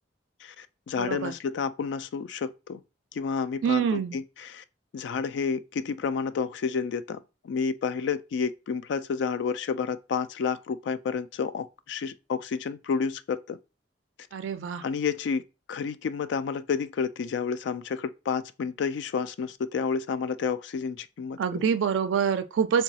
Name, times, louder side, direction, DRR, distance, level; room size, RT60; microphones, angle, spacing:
voice 1, 0.4-2.8 3.1-4.6 4.9-7.2 7.4-13.6 14.8-15.4 15.7-21.6, left 5 dB, 65° left, 0.3 m, -30 dB
voice 2, 1.0-1.3 3.6-4.2 14.3-14.8 21.4-22.8, right 7 dB, 85° right, 0.3 m, -26 dB
3.8 x 2.3 x 2.7 m
head